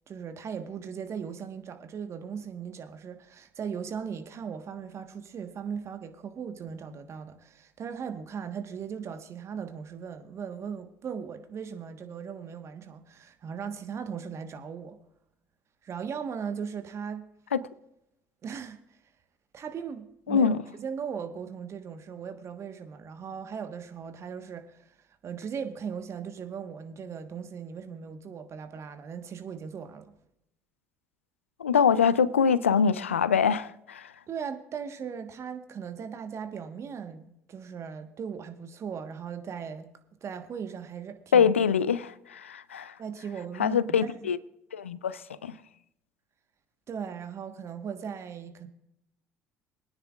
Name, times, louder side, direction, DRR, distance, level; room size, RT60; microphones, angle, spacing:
voice 1, 0.1-15.0 15.8-17.3 18.4-18.8 19.5-24.9 25.2-30.2 34.3-39.9 40.2-41.5 43.0-44.3 46.9-48.7, right 7 dB, 45° right, 1.3 m, -38 dB
voice 2, 20.3-20.6 31.6-34.1 41.3-42.9 43.6-44.4 44.7-45.5, left 7 dB, 90° left, 0.4 m, -24 dB
23.0 x 9.7 x 2.4 m
hypercardioid pair, 60°, 7 cm